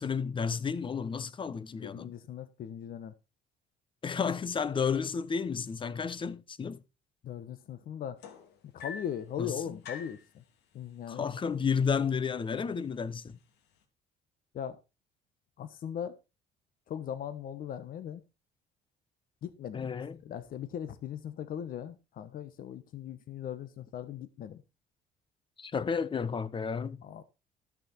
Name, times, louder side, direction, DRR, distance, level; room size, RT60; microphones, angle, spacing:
voice 1, 0.0-2.1 4.0-6.8 9.4-9.8 11.1-13.4 19.7-20.2 25.6-27.0, left 6 dB, 30° left, 0.9 m, -32 dB
voice 2, 1.8-3.1 7.2-8.2 8.7-10.4 10.7-11.2 14.5-14.8 15.6-16.2 16.9-18.2 19.4-19.9 20.2-24.6 27.0-27.2, left 9 dB, 55° left, 1.2 m, -39 dB
sound 1, 8.2-9.2 9.8-10.2 11.3-11.4 11.8-12.1 12.9-13.0, left 6 dB, 80° left, 2.5 m, -44 dB
13.5 x 6.7 x 4.3 m
cardioid pair, 110°, 17 cm